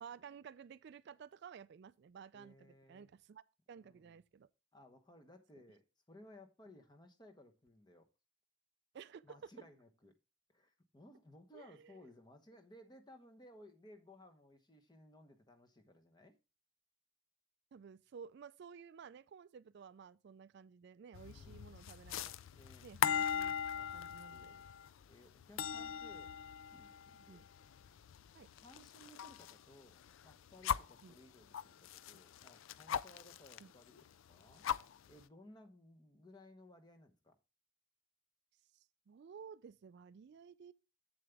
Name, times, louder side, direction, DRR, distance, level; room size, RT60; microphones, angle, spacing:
voice 1, 0.0-3.4 3.7-4.5 8.9-9.5 11.5-12.1 17.7-22.4 22.8-23.6 23.9-24.6 25.8-25.9 27.1-27.4 28.3-28.5 31.0-31.2 33.6-33.7 38.7-40.7, right 6 dB, 55° right, 0.3 m, -54 dB
voice 2, 2.3-3.1 3.8-4.1 4.7-8.1 9.2-10.2 10.5-16.4 21.2-21.7 22.5-22.9 23.8-24.7 25.1-26.3 26.7-27.4 28.6-34.0 34.3-34.7 35.1-37.4, left 1 dB, 20° left, 0.9 m, -60 dB
sound 1, 21.1-29.6 29.9-31.0 31.5-33.6 33.9-34.0 34.3-35.2, left 8 dB, 70° left, 0.3 m, -40 dB
7.9 x 7.3 x 3.4 m
head